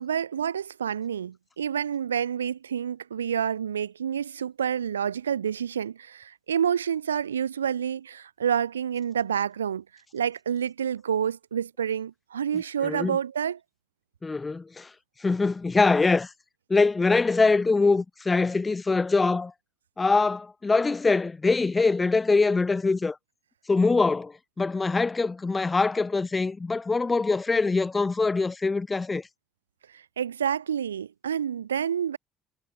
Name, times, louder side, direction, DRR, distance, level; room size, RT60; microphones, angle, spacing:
voice 1, 0.0-9.8 10.1-13.6 29.9-32.2, right 8 dB, 80° right, 0.8 m, -28 dB
voice 2, 12.8-13.2 14.2-14.9 15.2-16.3 16.7-19.5 20.0-23.2 23.7-29.3, left 3 dB, 20° left, 0.9 m, -23 dB
figure-of-eight pair, 55°, 0 cm